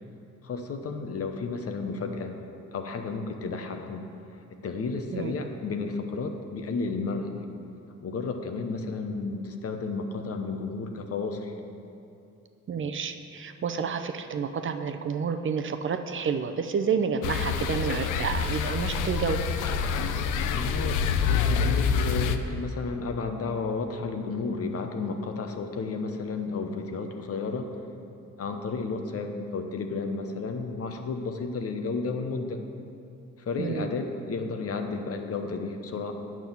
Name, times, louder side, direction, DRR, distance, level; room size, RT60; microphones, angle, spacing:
voice 1, 0.4-2.4 2.7-4.1 4.6-7.4 8.0-11.5 20.5-27.7 28.4-32.6 33.4-36.1, left 4 dB, 50° left, 5 dB, 1.0 m, -32 dB
voice 2, 12.7-19.4 33.6-33.9, right 6 dB, 40° right, 8 dB, 0.6 m, -29 dB
sound 1, 17.2-22.4, left 6 dB, 85° left, 0.6 m, -26 dB
9.0 x 6.1 x 7.0 m, 2.7 s
cardioid pair, 90°, 30 cm